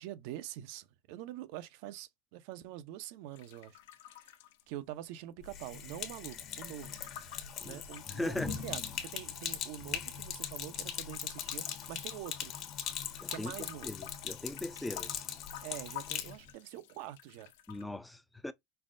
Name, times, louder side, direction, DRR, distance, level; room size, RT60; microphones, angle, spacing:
voice 1, 0.0-3.8 4.1-4.4 4.7-7.0 7.6-12.6 13.3-13.9 15.6-17.5, right 13 dB, 70° right, 0.7 m, -45 dB
sound 1, 3.3-5.4 5.6-9.0 9.6-10.6 10.9-17.8, left 13 dB, 80° left, 0.6 m, -52 dB
Sink (filling or washing), 5.4-16.3, left 8 dB, 45° left, 1.1 m, -40 dB
voice 2, 8.1-8.5 13.2-13.5 13.8-15.1 17.7-18.5, left 1 dB, 5° left, 0.5 m, -39 dB
5.5 x 2.1 x 2.6 m
supercardioid pair, 115°, 0 cm